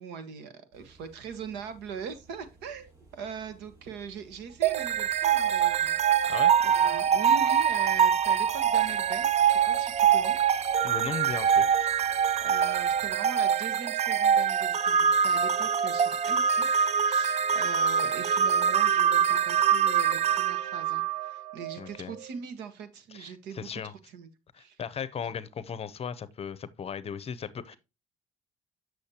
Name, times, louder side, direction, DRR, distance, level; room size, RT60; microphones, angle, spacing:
voice 1, 0.0-10.4 12.4-24.3 24.6-24.8 25.2-25.3, right 6 dB, 85° right, 1.3 m, -41 dB
sound 1, 0.7-13.1, right 3 dB, 70° right, 5.3 m, -57 dB
sound 2, 4.6-21.8, right 8 dB, 40° right, 0.4 m, -24 dB
voice 2, 10.8-12.0 21.8-22.1 23.1-23.9 24.5-27.8, left 7 dB, 35° left, 0.7 m, -37 dB
8.2 x 6.3 x 2.8 m
cardioid pair, 110°, 17 cm